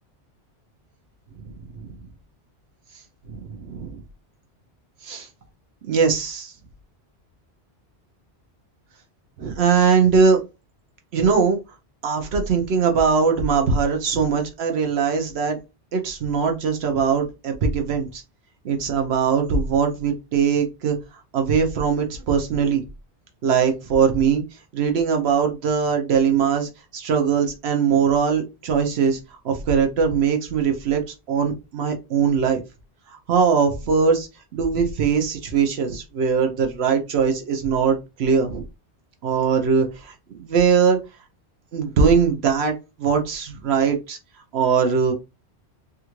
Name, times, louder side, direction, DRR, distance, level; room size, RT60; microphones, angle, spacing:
voice 1, 3.3-4.0 5.0-5.3 5.8-6.5 9.4-10.4 11.1-11.6 12.0-15.6 15.9-18.2 18.6-21.0 21.3-22.8 23.4-24.4 24.7-29.2 29.4-31.0 31.3-32.6 33.3-38.6 39.2-41.0 41.7-44.2 44.5-45.1, right 6 dB, 70° right, 4 dB, 0.9 m, -21 dB
3.5 x 2.4 x 2.9 m, 0.26 s
omnidirectional pair, 1.1 m